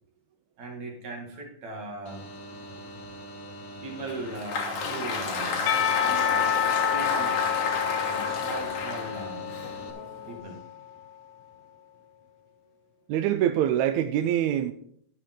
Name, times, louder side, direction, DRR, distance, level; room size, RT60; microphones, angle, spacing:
voice 1, 0.6-2.3 3.8-5.6 6.1-6.5 6.9-7.4 8.0-9.5 10.3-10.6, right 2 dB, 60° right, 3.3 m, -38 dB
sound 1, 2.0-9.9, right 1 dB, 35° left, 1.8 m, -43 dB
Applause, 4.1-10.4, left 4 dB, 65° left, 2.6 m, -31 dB
Percussion / Church bell, 5.7-10.9, left 9 dB, 90° left, 2.3 m, -29 dB
voice 2, 13.1-14.7, right 11 dB, 80° right, 1.7 m, -24 dB
11.5 x 10.5 x 3.8 m
omnidirectional pair, 3.6 m